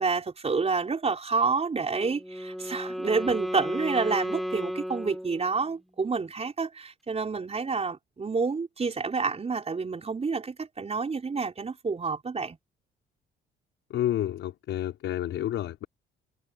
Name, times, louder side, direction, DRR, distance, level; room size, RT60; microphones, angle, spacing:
voice 1, 0.0-12.6, right 4 dB, 30° right, 4.8 m, -29 dB
Wind instrument woodwind instrument, 1.9-5.8, equal, ahead, 4.8 m, -34 dB
voice 2, 13.9-15.9, left 12 dB, 80° left, 4.7 m, -30 dB
cardioid pair, 90°, 20 cm